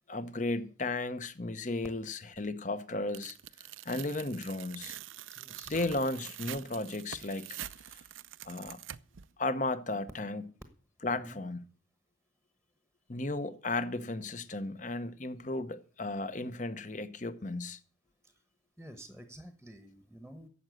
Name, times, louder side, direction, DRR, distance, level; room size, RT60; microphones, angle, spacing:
voice 1, 0.1-3.4 3.8-5.0 5.7-7.5 8.4-8.8 9.4-10.5 11.0-11.6 13.1-17.8, left 2 dB, 40° left, 0.9 m, -34 dB
Tearing, 3.1-9.3, right 12 dB, 85° right, 0.6 m, -45 dB
voice 2, 5.4-5.8 11.0-11.4 18.2-18.3 18.8-20.5, right 1 dB, 5° left, 1.2 m, -50 dB
11.5 x 7.7 x 9.1 m
head